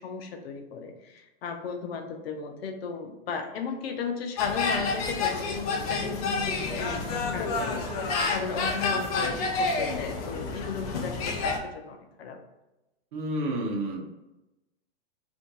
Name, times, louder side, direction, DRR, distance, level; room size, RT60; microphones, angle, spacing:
voice 1, 0.0-12.4, left 5 dB, 80° left, 4 dB, 0.6 m, -35 dB
sound 1, 4.4-11.6, left 4 dB, 40° left, 0.5 m, -29 dB
voice 2, 13.1-14.0, right 1 dB, 55° right, 1 dB, 0.8 m, -30 dB
2.5 x 2.3 x 4.0 m, 0.98 s
supercardioid pair, 155°, 30 cm